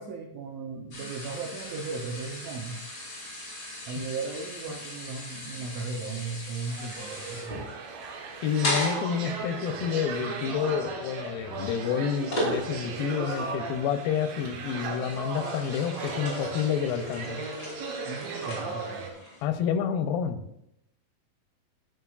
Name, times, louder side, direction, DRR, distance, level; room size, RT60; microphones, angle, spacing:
voice 1, 0.0-2.8 3.9-7.7 18.0-19.1, right 4 dB, 85° right, 1 dB, 1.5 m, -36 dB
sound 1, 0.9-13.1 13.5-13.8 14.4-19.4, left 1 dB, 30° left, 3.4 m, -37 dB
sound 2, 6.7-19.1, right 4 dB, 65° right, 1.8 m, -37 dB
voice 2, 8.4-17.5 19.4-20.4, left 8 dB, 85° left, 9 dB, 2.4 m, -29 dB
11.0 x 7.3 x 2.4 m, 0.79 s
omnidirectional pair, 4.1 m